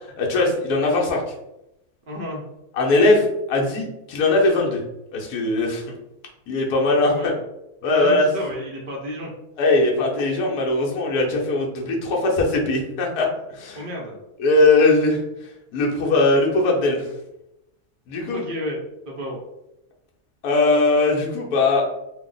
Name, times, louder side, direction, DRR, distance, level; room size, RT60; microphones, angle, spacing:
voice 1, 0.2-1.2 2.8-4.8 5.1-5.8 6.5-7.3 7.8-8.3 9.6-13.8 14.4-15.2 15.7-17.1 18.1-18.4 20.4-21.8, left 2 dB, 80° left, -1 dB, 1.3 m, -20 dB
voice 2, 2.1-2.4 6.8-7.4 7.9-9.3 13.7-14.2 18.3-19.4, equal, 50° right, -1 dB, 0.6 m, -31 dB
3.0 x 2.0 x 3.7 m, 0.86 s
omnidirectional pair, 1.7 m